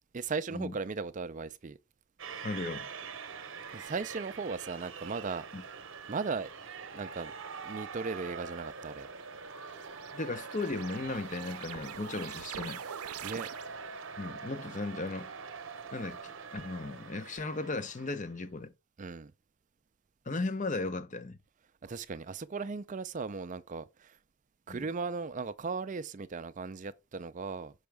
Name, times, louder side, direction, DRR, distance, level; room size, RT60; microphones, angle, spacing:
voice 1, 0.1-1.8 3.7-5.4 6.1-6.5 6.9-7.3 7.6-9.1 13.2-13.5 19.0-19.3 21.8-24.2 24.7-27.7, right 4 dB, 35° right, 0.4 m, -37 dB
sound 1, 2.2-18.4, right 5 dB, 55° right, 0.9 m, -44 dB
voice 2, 2.4-2.9 5.5-5.6 10.1-12.8 14.2-15.3 15.9-18.7 20.3-21.4 24.7-24.9, left 3 dB, 35° left, 0.7 m, -36 dB
sound 2, 9.1-14.0, right 9 dB, 85° right, 0.5 m, -45 dB
6.2 x 5.7 x 3.4 m
head